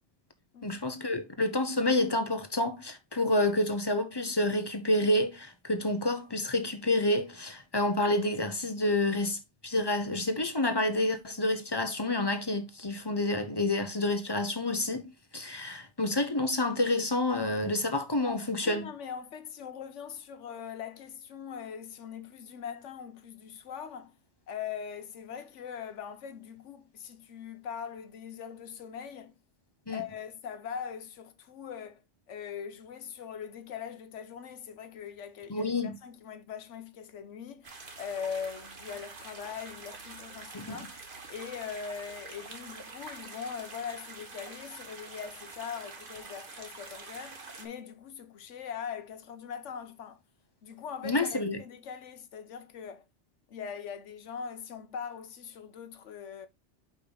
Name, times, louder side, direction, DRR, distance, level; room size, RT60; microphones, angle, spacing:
voice 1, 0.6-9.4 9.6-18.9 29.9-30.0 35.5-36.0 40.5-40.8 51.0-51.6, left 2 dB, 25° left, 0.9 m, -29 dB
voice 2, 18.6-24.1 24.5-29.3 29.9-32.0 32.3-35.7 36.0-40.9 41.3-50.2 50.6-53.0 53.5-56.5, left 7 dB, 90° left, 1.2 m, -41 dB
sound 1, 37.6-47.7, right 3 dB, 50° right, 1.4 m, -46 dB
5.4 x 5.3 x 3.9 m
omnidirectional pair, 1.2 m